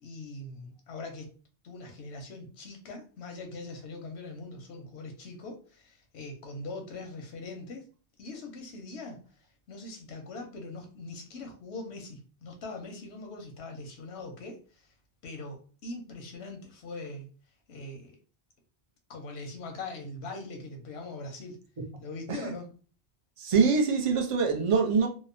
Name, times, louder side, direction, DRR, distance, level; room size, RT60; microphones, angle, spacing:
voice 1, 0.0-1.3 1.6-7.8 8.2-9.2 9.7-14.9 15.2-17.3 17.7-18.2 19.1-21.6 22.0-22.7, left 2 dB, 90° left, 0.9 m, -42 dB
voice 2, 23.4-25.1, right 5 dB, 50° right, 0.4 m, -24 dB
2.8 x 2.0 x 2.5 m
omnidirectional pair, 1.1 m